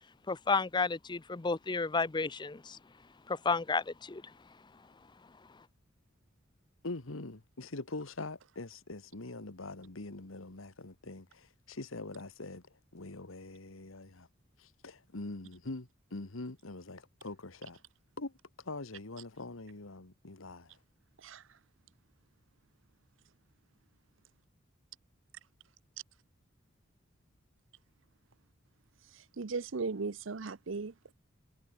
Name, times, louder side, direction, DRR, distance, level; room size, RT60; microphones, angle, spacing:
voice 1, 0.3-2.8 3.3-4.2, left 4 dB, 20° left, 0.6 m, -32 dB
voice 2, 6.8-12.6 12.9-14.3 14.6-17.8 18.2-20.8, left 2 dB, 80° left, 1.6 m, -43 dB
voice 3, 29.1-31.1, right 4 dB, 65° right, 0.7 m, -37 dB
head